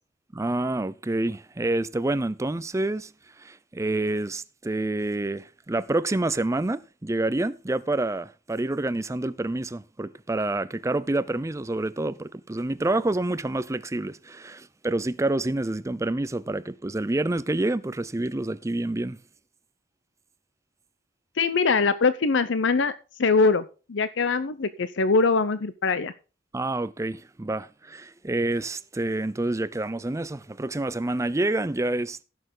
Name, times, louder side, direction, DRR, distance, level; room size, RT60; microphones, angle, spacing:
voice 1, 0.3-3.1 3.4-19.2 26.5-32.2, right 2 dB, 15° right, 0.4 m, -28 dB
voice 2, 21.4-22.9 23.2-26.1, left 4 dB, 75° left, 0.7 m, -22 dB
16.0 x 6.6 x 3.8 m
head